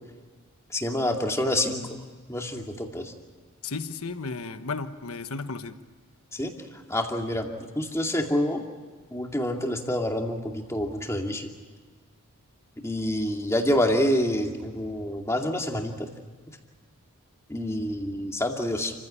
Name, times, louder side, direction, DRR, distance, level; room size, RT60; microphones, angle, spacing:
voice 1, 0.7-1.9 2.3-3.1 6.3-6.5 6.9-7.5 7.8-8.6 9.1-11.5 12.8-15.9 17.5-18.9, left 1 dB, 15° left, 2 dB, 2.4 m, -27 dB
voice 2, 3.6-5.8, left 4 dB, 80° left, 9 dB, 1.3 m, -34 dB
29.5 x 15.5 x 10.0 m, 1.5 s
head